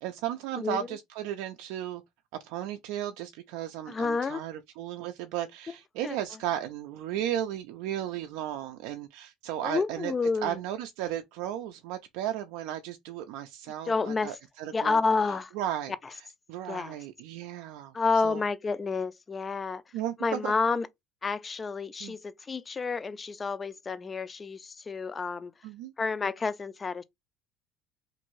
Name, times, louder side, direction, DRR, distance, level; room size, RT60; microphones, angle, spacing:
voice 1, 0.0-2.0 2.4-10.1 10.4-15.0 15.3-18.4 19.9-20.5 22.0-22.2 25.6-25.9, right 11 dB, 75° right, 0.4 m, -35 dB
voice 2, 3.9-4.4 6.0-6.2 9.6-10.6 13.9-14.3 14.7-15.5 16.7-17.0 17.9-19.8 20.2-20.9 21.2-25.5 26.0-27.0, left 4 dB, 25° left, 0.3 m, -29 dB
2.6 x 2.5 x 3.0 m
cardioid pair, 120°, 0 cm